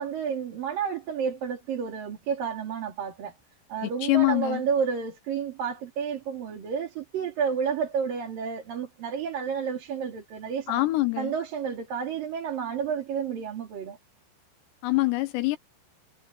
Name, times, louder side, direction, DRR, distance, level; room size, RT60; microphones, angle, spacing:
voice 1, 0.0-3.3 3.7-10.8 11.2-14.0, right 7 dB, 50° right, 4.3 m, -30 dB
voice 2, 3.8-4.6 10.7-11.3 14.8-15.6, left 20 dB, 80° left, 2.6 m, -24 dB
omnidirectional pair, 5.5 m